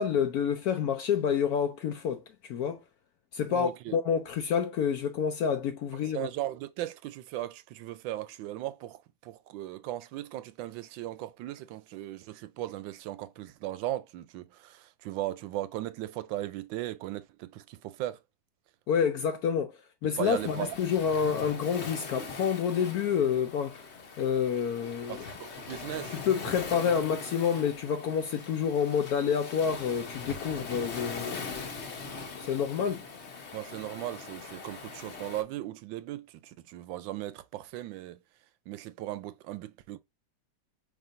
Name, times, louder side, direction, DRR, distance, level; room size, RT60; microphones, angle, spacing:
voice 1, 0.0-2.8 3.3-6.3 18.9-23.9 24.2-25.2 26.1-31.7 32.3-33.1, left 7 dB, 70° left, 0.9 m, -28 dB
voice 2, 3.5-4.0 6.1-18.2 20.2-20.8 25.1-26.5 33.5-38.2 38.7-40.0, right 14 dB, 80° right, 1.3 m, -37 dB
Waves surf, 20.2-35.4, left 4 dB, 45° left, 1.0 m, -41 dB
4.8 x 3.6 x 2.5 m
omnidirectional pair, 2.1 m